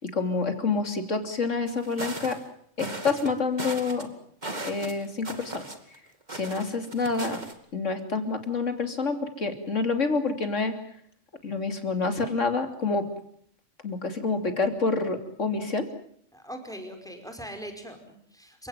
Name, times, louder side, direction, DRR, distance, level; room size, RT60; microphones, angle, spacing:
voice 1, 0.0-2.4 2.8-4.1 4.6-5.7 6.3-7.4 7.7-10.8 11.4-13.1 13.8-15.9, left 4 dB, 85° left, 7 dB, 3.4 m, -28 dB
sound 1, 1.7-2.4 2.8-3.3 3.6-4.0 4.4-6.0 6.3-7.5, right 2 dB, 35° right, 2.7 m, -37 dB
voice 2, 16.3-18.7, equal, 5° left, 5 dB, 5.1 m, -41 dB
29.5 x 17.0 x 9.2 m, 0.65 s
omnidirectional pair, 1.3 m